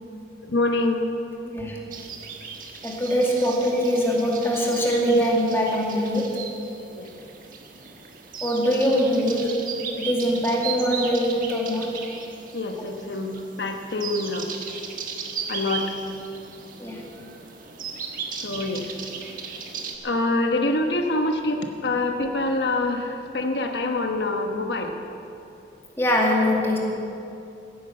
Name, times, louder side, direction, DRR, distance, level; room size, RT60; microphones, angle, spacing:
voice 1, 0.4-1.0 7.0-7.1 12.5-13.3 13.6-14.5 15.5-15.9 18.4-18.9 20.0-24.9, left 2 dB, 85° left, 4 dB, 1.2 m, -25 dB
voice 2, 1.5-1.8 2.8-6.4 8.4-9.6 10.0-11.9 16.8-17.1 23.3-23.4 26.0-26.8, equal, 15° left, -2 dB, 2.2 m, -22 dB
sound 1, 1.9-20.0, right 6 dB, 50° right, 1.4 m, -37 dB
15.5 x 10.0 x 7.7 m, 2.7 s
head